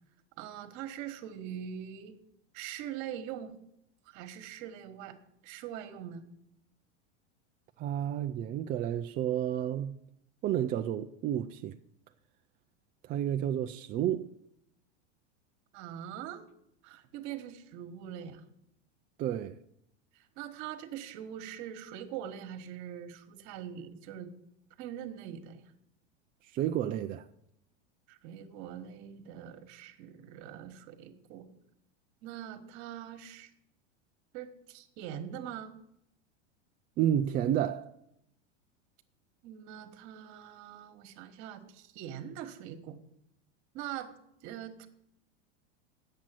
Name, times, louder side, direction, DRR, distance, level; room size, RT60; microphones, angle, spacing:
voice 1, 0.4-2.2 2.5-3.6 4.0-5.2 5.4-6.3 15.7-16.5 16.8-18.4 20.1-24.3 24.8-25.6 28.1-31.5 32.2-33.5 34.3-35.8 39.4-43.0 43.7-44.1 44.4-44.9, right 10 dB, 50° right, 1.4 m, -43 dB
voice 2, 7.8-9.9 10.4-11.8 13.1-14.3 19.2-19.6 26.5-27.2 37.0-37.9, right 10 dB, 25° right, 0.3 m, -30 dB
8.8 x 7.6 x 7.5 m
hypercardioid pair, 115°, 36 cm